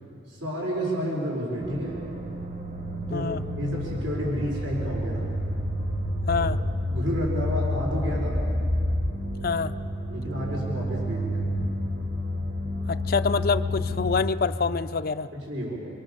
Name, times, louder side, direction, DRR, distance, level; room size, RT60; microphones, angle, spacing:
voice 1, 0.3-2.0 3.1-3.3 3.6-5.3 6.9-8.4 10.1-11.4 15.3-15.8, equal, 85° right, -3 dB, 5.2 m, -30 dB
sound 1, 1.6-14.3, left 1 dB, 45° right, 1.6 m, -29 dB
voice 2, 3.1-3.4 6.3-6.6 9.4-9.7 12.9-15.3, left 5 dB, 50° left, 10 dB, 0.5 m, -26 dB
26.5 x 24.0 x 7.1 m, 2.6 s
head